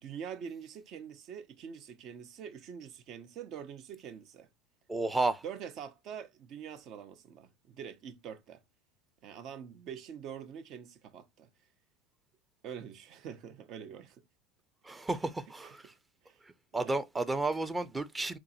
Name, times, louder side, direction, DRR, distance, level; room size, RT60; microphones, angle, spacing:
voice 1, 0.0-4.5 5.4-8.6 9.2-11.5 12.6-14.2 15.6-15.7 16.2-16.4 16.8-16.9, right 8 dB, 50° right, 0.8 m, -45 dB
voice 2, 4.9-5.4 14.8-15.9 16.4-18.4, right 2 dB, 15° right, 0.7 m, -32 dB
3.7 x 3.1 x 2.7 m
hypercardioid pair, 90°, 0 cm